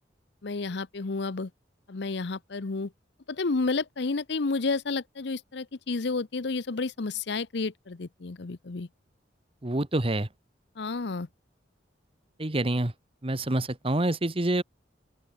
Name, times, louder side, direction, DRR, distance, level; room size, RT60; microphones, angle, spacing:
voice 1, 0.4-1.5 1.9-2.9 3.3-8.9 10.8-11.3, left 3 dB, 65° left, 0.8 m, -31 dB
voice 2, 9.6-10.3 12.4-12.9 13.2-14.6, right 1 dB, 30° right, 1.3 m, -27 dB
open air
head